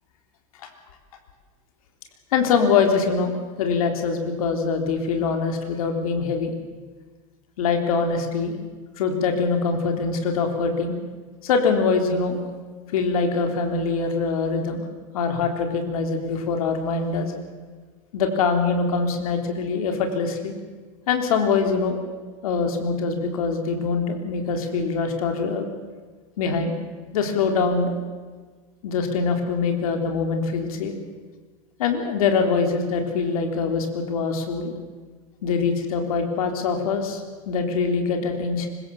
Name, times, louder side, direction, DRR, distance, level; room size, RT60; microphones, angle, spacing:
voice 1, 2.3-6.5 7.6-8.6 9.0-10.9 11.4-12.4 12.9-14.9 15.1-17.3 18.1-20.5 21.1-22.0 22.4-25.7 26.4-26.7 27.1-28.0 28.8-30.9 31.8-34.7 35.4-38.7, left 5 dB, 85° left, 4 dB, 3.7 m, -23 dB
25.0 x 22.0 x 7.3 m, 1.4 s
supercardioid pair, 150°, 18 cm